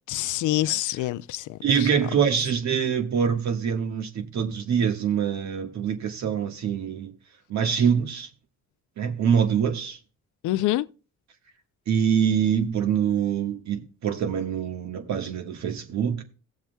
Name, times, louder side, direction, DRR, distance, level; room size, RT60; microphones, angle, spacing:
voice 1, 0.1-1.9 10.4-10.9, left 15 dB, 80° left, 0.5 m, -26 dB
voice 2, 1.6-7.1 7.5-8.3 9.0-10.0 11.9-16.2, right 7 dB, 65° right, 1.6 m, -25 dB
17.0 x 7.2 x 2.3 m
cardioid pair, 90°, 30 cm